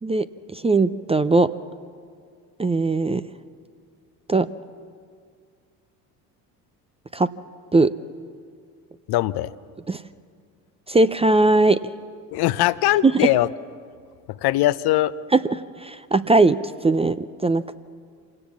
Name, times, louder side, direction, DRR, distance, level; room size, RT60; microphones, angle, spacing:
voice 1, 0.0-1.5 2.6-3.2 4.3-4.5 7.1-7.3 7.7-7.9 9.9-10.0 10.9-11.8 13.0-13.3 15.3-15.4 15.8-17.8, right 3 dB, 15° right, 13 dB, 0.6 m, -19 dB
voice 2, 9.1-9.5 12.3-13.5 14.3-15.1, left 15 dB, 55° left, 15 dB, 0.8 m, -21 dB
26.5 x 17.5 x 7.3 m, 2.1 s
hypercardioid pair, 65°, 47 cm